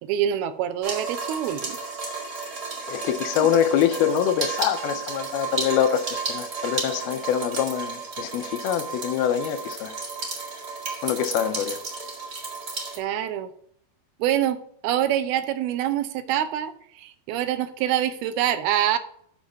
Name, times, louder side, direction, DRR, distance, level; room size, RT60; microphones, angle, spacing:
voice 1, 0.0-1.8 3.4-3.5 13.0-13.5 14.2-14.6 14.8-19.0, right 11 dB, 85° right, 2.6 m, -25 dB
sound 1, 0.8-13.0, right 4 dB, 40° right, 1.5 m, -33 dB
voice 2, 2.9-10.0 11.0-11.8, left 9 dB, 85° left, 2.7 m, -24 dB
8.1 x 6.4 x 5.8 m
omnidirectional pair, 4.4 m